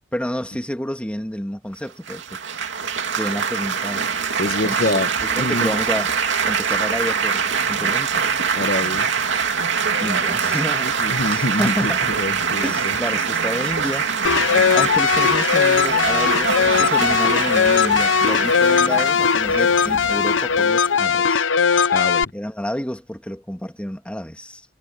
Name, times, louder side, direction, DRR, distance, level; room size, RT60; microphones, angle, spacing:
voice 1, 0.1-2.4 3.2-4.1 4.6-5.0 5.3-8.3 10.0-10.9 11.3-12.1 12.6-14.1 14.7-21.4 22.3-24.6, equal, 5° left, 2.1 m, -29 dB
Laughter / Applause / Chatter, 2.1-21.2, right 6 dB, 75° right, 2.9 m, -23 dB
voice 2, 4.4-5.1 5.4-5.7 8.5-9.1 10.8-12.9 21.9-22.3, left 2 dB, 50° left, 1.1 m, -25 dB
sound 1, 14.2-22.2, left 6 dB, 85° left, 0.7 m, -18 dB
head